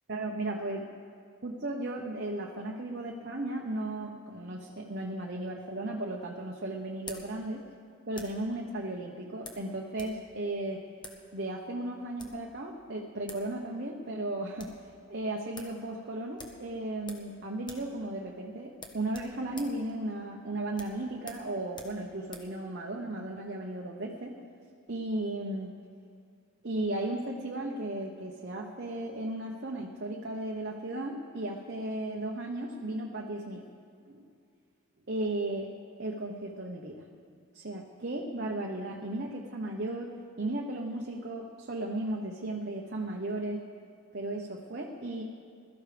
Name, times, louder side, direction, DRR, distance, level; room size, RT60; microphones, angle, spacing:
voice 1, 0.1-0.8 1.4-7.6 8.1-10.8 11.3-14.7 15.1-24.3 24.9-25.7 26.6-33.6 34.1-34.3 35.1-35.7 36.0-37.0 37.5-43.6 44.1-45.2, right 1 dB, 50° right, 0 dB, 0.9 m, -35 dB
sound 1, 5.6-8.5 9.4-10.2 10.4-10.5 11.0-11.2 12.0-12.5 13.0-13.1 13.3-13.5 13.8-13.9 14.2-14.8 15.2-15.3 15.5-15.8 16.4-17.3 17.6-17.9 18.2-18.3 18.7-22.5, left 3 dB, 20° left, 1.1 m, -48 dB
21.0 x 13.5 x 3.4 m, 2.3 s
head